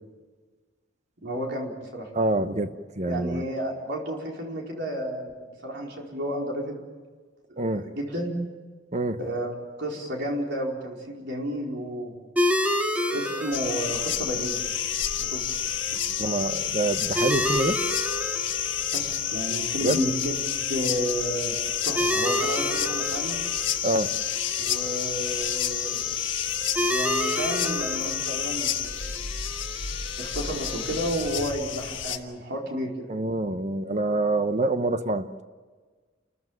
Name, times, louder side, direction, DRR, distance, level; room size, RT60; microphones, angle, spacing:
voice 1, 1.2-2.1 3.1-6.8 7.5-8.3 9.2-12.1 13.1-14.6 15.2-15.4 18.9-20.4 20.7-21.6 21.8-23.4 24.6-26.2 26.8-29.3 30.2-33.1, equal, 60° right, 0 dB, 4.5 m, -32 dB
voice 2, 2.1-3.4 7.6-7.9 8.9-9.2 16.2-17.8 19.8-20.0 23.8-24.1 33.1-35.4, right 2 dB, 35° right, 10 dB, 1.0 m, -26 dB
sound 1, 12.4-31.5, left 1 dB, 10° right, 2.0 m, -32 dB
sound 2, 13.5-32.2, left 10 dB, 75° left, 1.5 m, -29 dB
28.5 x 14.5 x 9.2 m, 1.4 s
head